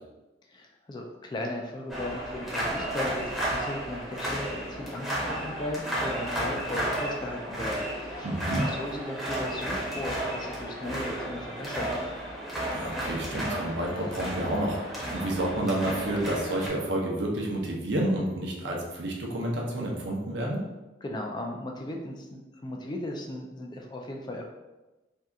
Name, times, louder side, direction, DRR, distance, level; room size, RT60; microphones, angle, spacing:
voice 1, 0.5-8.3 8.6-12.0 21.0-24.4, left 1 dB, 25° left, 1 dB, 0.3 m, -36 dB
sound 1, 1.9-16.7, right 1 dB, ahead, 0.7 m, -33 dB
voice 2, 8.2-8.6 12.7-20.6, right 1 dB, 70° right, -2 dB, 0.7 m, -30 dB
2.7 x 2.3 x 3.5 m, 1.1 s
head